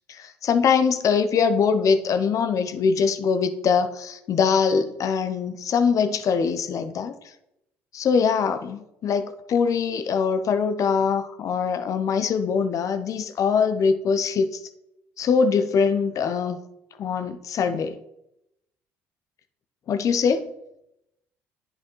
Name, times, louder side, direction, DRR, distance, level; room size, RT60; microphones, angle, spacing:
voice 1, 0.1-7.1 7.9-14.5 15.2-16.6 17.0-18.0 19.9-20.5, left 6 dB, 55° left, 9 dB, 0.8 m, -22 dB
8.3 x 5.2 x 4.5 m, 0.83 s
hypercardioid pair, 65°, 7 cm